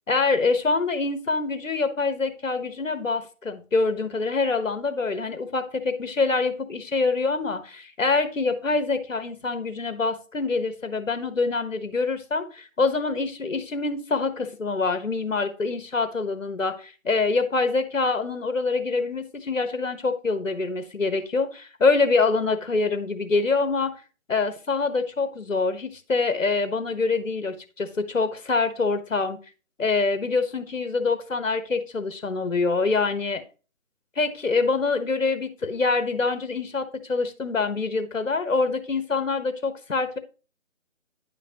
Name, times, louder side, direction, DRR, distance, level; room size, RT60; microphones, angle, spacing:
voice 1, 0.1-23.9 24.3-29.4 29.8-33.4 34.2-40.2, left 4 dB, 70° left, 10 dB, 1.2 m, -25 dB
10.0 x 5.1 x 2.9 m, 0.35 s
figure-of-eight pair, 155°, 40 cm